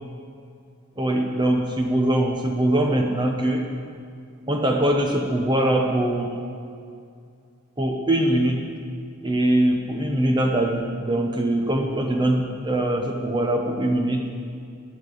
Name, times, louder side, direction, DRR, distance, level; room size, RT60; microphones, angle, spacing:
voice 1, 1.0-3.7 4.5-6.4 7.8-8.6 9.2-14.3, right 1 dB, 20° right, 2 dB, 0.8 m, -22 dB
9.6 x 8.5 x 8.4 m, 2.4 s
head